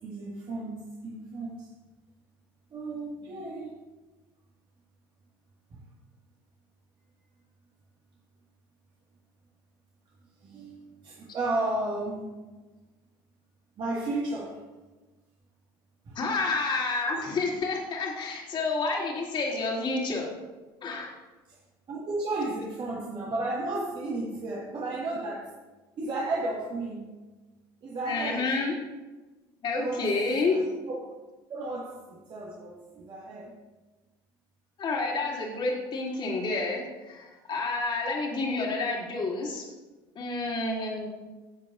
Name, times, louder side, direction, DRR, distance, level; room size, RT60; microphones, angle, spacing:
voice 1, 0.0-1.7 2.7-3.7 5.7-5.8 10.4-12.3 13.8-14.6 16.1-16.2 21.5-21.6 21.9-25.5 26.0-27.2 27.8-28.6 29.7-30.1 30.5-31.0 31.5-33.6, right 2 dB, 40° right, -4 dB, 1.9 m, -33 dB
voice 2, 16.1-20.3 20.8-21.1 28.1-28.8 29.6-30.5 34.8-39.6 40.1-41.1, left 3 dB, 40° left, -2 dB, 3.0 m, -29 dB
16.0 x 7.5 x 2.6 m, 1.2 s
hypercardioid pair, 70°, 12 cm